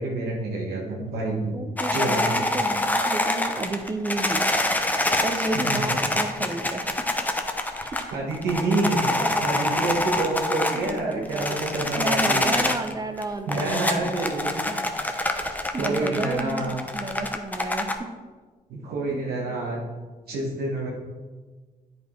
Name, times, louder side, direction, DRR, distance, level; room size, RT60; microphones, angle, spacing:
voice 1, 0.0-1.5 1.9-2.4 5.3-5.8 8.1-9.1 9.4-12.5 13.5-14.5 15.8-16.8 18.7-19.8 20.3-20.9, right 2 dB, 85° right, -3 dB, 1.5 m, -28 dB
voice 2, 1.5-4.5 5.2-6.9 7.8-8.1 9.2-9.4 10.7-14.8 15.7-18.0 19.1-19.2, right 2 dB, 25° right, 7 dB, 0.8 m, -32 dB
sound 1, 1.8-12.9 13.2-18.0, left 1 dB, 10° left, 0.8 m, -26 dB
8.9 x 5.2 x 4.5 m, 1.3 s
cardioid pair, 85°, 16 cm